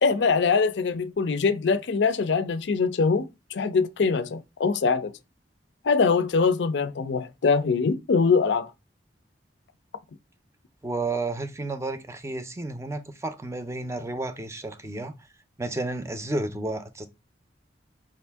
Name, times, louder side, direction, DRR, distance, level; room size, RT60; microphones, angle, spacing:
voice 1, 0.0-3.3 3.5-5.1 5.8-8.7, left 5 dB, 75° left, 0.5 m, -23 dB
voice 2, 10.8-15.1 15.6-17.1, right 2 dB, 15° right, 0.5 m, -31 dB
4.7 x 2.6 x 3.4 m
head